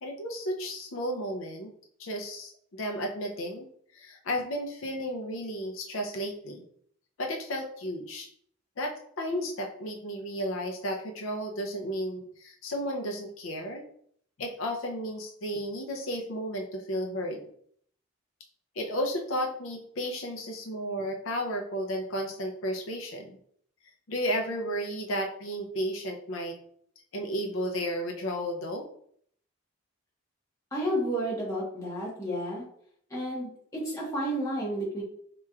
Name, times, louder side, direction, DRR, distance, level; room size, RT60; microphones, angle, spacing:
voice 1, 0.0-1.7 2.0-3.7 3.9-6.6 7.2-8.3 8.8-13.8 14.4-17.4 18.8-23.4 24.1-26.5 27.1-28.8, equal, 85° left, 3 dB, 0.6 m, -33 dB
voice 2, 30.7-32.7 33.1-35.0, equal, 15° left, -6 dB, 1.3 m, -31 dB
4.5 x 2.9 x 2.3 m, 0.63 s
head